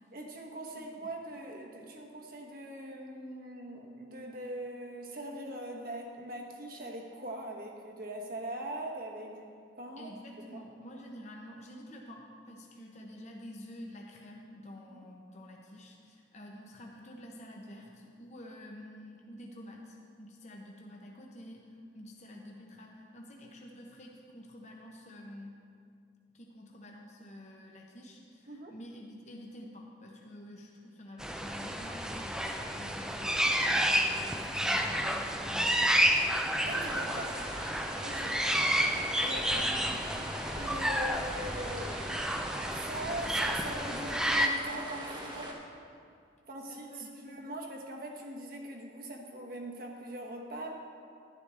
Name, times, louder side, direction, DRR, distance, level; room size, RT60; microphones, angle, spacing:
voice 1, 0.1-10.1 10.5-10.6 14.9-15.0 28.5-28.7 36.6-37.4 38.0-38.5 39.2-40.0 40.5-42.1 42.7-45.6 46.5-50.7, right 1 dB, 50° right, 1 dB, 1.2 m, -42 dB
voice 2, 0.8-1.1 10.0-25.6 26.3-36.0 38.5-38.7 39.5-39.8 46.7-47.8, left 1 dB, 35° left, -1 dB, 0.9 m, -49 dB
sound 1, 31.2-44.5, equal, 5° right, 0.4 m, -30 dB
sound 2, 36.6-45.5, equal, 25° right, 1.2 m, -42 dB
11.5 x 11.0 x 3.5 m, 2.3 s
head